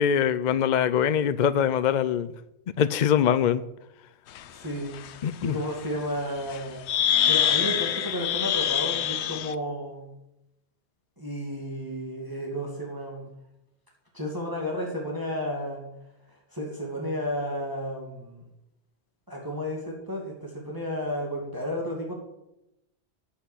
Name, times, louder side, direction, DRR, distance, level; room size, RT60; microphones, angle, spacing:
voice 1, 0.0-2.3 2.8-3.6 5.2-5.6, left 8 dB, 55° left, 14 dB, 0.6 m, -23 dB
sound 1, 4.4-4.5 4.9-5.1 6.5-6.6 6.9-9.5, left 10 dB, 90° left, 0.9 m, -25 dB
voice 2, 4.5-4.9 5.4-6.9 7.3-10.0 11.2-13.3 14.1-15.8 16.5-18.4 19.3-22.1, equal, 20° right, -2 dB, 2.3 m, -32 dB
9.8 x 8.2 x 8.1 m, 0.87 s
omnidirectional pair, 1.1 m